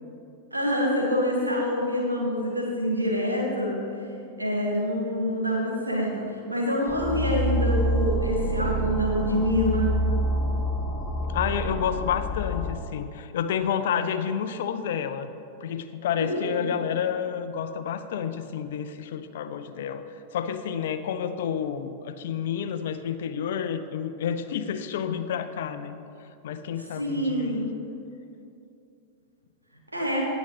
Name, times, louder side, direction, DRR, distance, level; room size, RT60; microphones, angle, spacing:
voice 1, 0.5-3.8 4.4-9.9 16.2-16.7 27.0-27.7 29.9-30.3, equal, 80° right, -1 dB, 2.0 m, -26 dB
sound 1, 6.9-12.7, right 1 dB, 15° left, 1.8 m, -27 dB
voice 2, 11.3-15.3 15.6-20.0 20.3-26.0 26.4-27.7, left 8 dB, 55° left, 10 dB, 0.6 m, -30 dB
18.0 x 7.2 x 3.1 m, 2.6 s
figure-of-eight pair, 90°, 0 cm